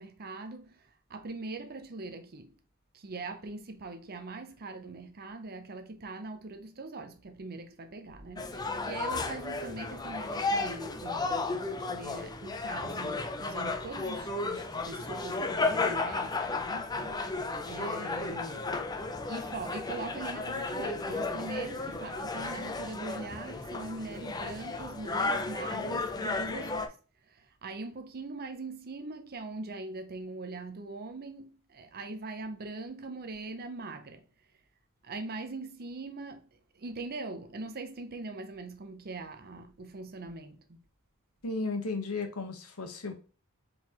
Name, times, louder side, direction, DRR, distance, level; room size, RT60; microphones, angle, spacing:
voice 1, 0.0-2.6 2.9-18.6 19.2-27.0 27.2-34.2 35.0-40.8, right 3 dB, 45° right, 0.6 m, -42 dB
sound 1, 8.4-26.9, left 3 dB, 20° left, 0.5 m, -34 dB
voice 2, 41.4-43.1, left 3 dB, 75° left, 1.0 m, -34 dB
4.6 x 3.9 x 2.9 m
head